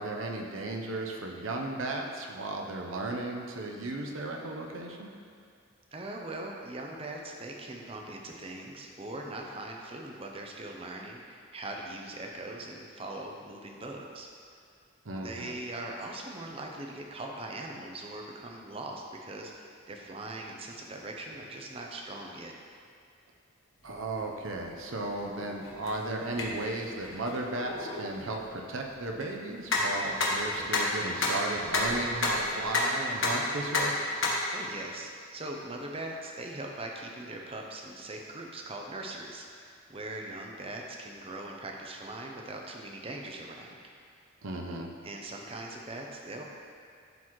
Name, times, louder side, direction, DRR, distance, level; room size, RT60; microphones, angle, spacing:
voice 1, 0.0-5.1 15.0-15.6 23.8-33.9 44.4-44.9, right 2 dB, 80° right, 1 dB, 0.8 m, -35 dB
voice 2, 5.9-14.3 15.1-22.5 34.5-43.8 45.0-46.4, right 2 dB, 30° right, 1 dB, 0.6 m, -41 dB
sound 1, 23.8-33.4 33.7-34.4, left 2 dB, 70° left, 1.1 m, -32 dB
12.0 x 4.0 x 3.1 m, 2.3 s
head